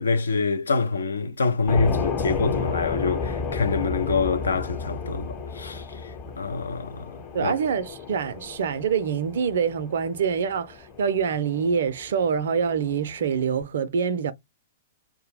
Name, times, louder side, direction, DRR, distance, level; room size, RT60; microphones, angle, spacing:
voice 1, 0.0-7.1 7.4-7.5, left 4 dB, 75° left, 0.4 m, -26 dB
sound 1, 1.7-13.6, left 5 dB, 25° left, 0.9 m, -33 dB
voice 2, 7.3-14.3, right 6 dB, 60° right, 0.4 m, -25 dB
2.2 x 2.0 x 3.2 m
figure-of-eight pair, 110°, 0 cm